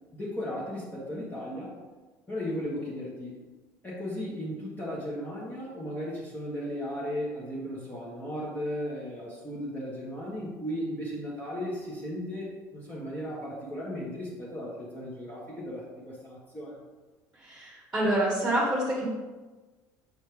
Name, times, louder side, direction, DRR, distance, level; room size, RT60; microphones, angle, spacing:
voice 1, 0.1-1.7 2.3-3.4 3.8-16.8, equal, 20° left, -7 dB, 1.7 m, -36 dB
voice 2, 17.5-19.0, right 1 dB, 10° right, -6 dB, 1.7 m, -27 dB
6.5 x 4.1 x 3.5 m, 1.3 s
hypercardioid pair, 75°, 9 cm